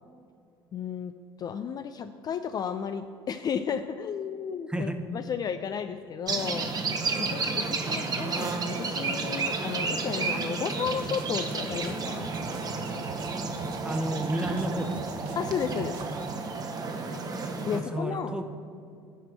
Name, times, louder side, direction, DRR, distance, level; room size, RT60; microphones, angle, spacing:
voice 1, 0.7-6.7 7.2-12.3 15.4-16.1 17.7-18.3, left 7 dB, 30° left, 9 dB, 0.4 m, -33 dB
voice 2, 4.7-5.0 7.6-7.7 13.8-15.3 17.7-18.4, right 1 dB, 5° right, 7 dB, 1.0 m, -32 dB
sound 1, 6.3-17.8, right 4 dB, 30° right, 1.2 m, -31 dB
sound 2, 10.8-16.3, right 5 dB, 65° right, 0.7 m, -48 dB
9.1 x 5.9 x 7.9 m, 2.4 s
figure-of-eight pair, 60°, 13 cm